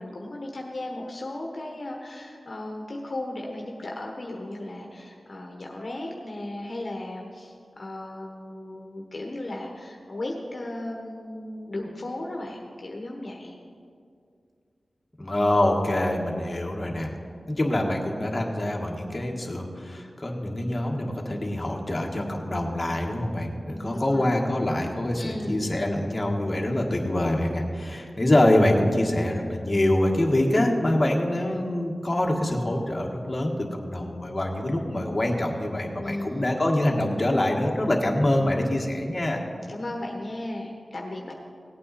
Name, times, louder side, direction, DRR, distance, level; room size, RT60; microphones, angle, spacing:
voice 1, 0.0-13.6 23.9-24.4 25.2-25.8 36.0-36.5 38.4-38.6 39.7-41.3, left 1 dB, 50° left, 0 dB, 1.2 m, -36 dB
voice 2, 15.2-17.1 17.5-39.4, left 1 dB, 25° left, -1 dB, 1.6 m, -25 dB
17.5 x 8.9 x 4.2 m, 2.3 s
wide cardioid pair, 80°, 0 cm